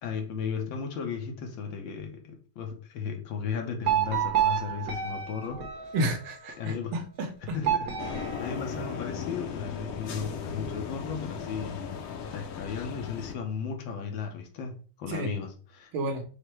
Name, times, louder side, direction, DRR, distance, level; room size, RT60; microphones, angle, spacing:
voice 1, 0.0-5.9 6.6-6.9 7.4-12.0 12.3-15.9, left 6 dB, 70° left, 1.5 m, -35 dB
sound 1, 3.8-6.5 7.6-9.4, right 9 dB, 55° right, 1.1 m, -30 dB
voice 2, 5.9-7.6 15.1-15.3 15.9-16.2, right 1 dB, 80° right, 1.7 m, -31 dB
sound 2, 8.0-13.4, left 7 dB, 85° left, 0.8 m, -36 dB
4.9 x 2.1 x 4.4 m
omnidirectional pair, 2.3 m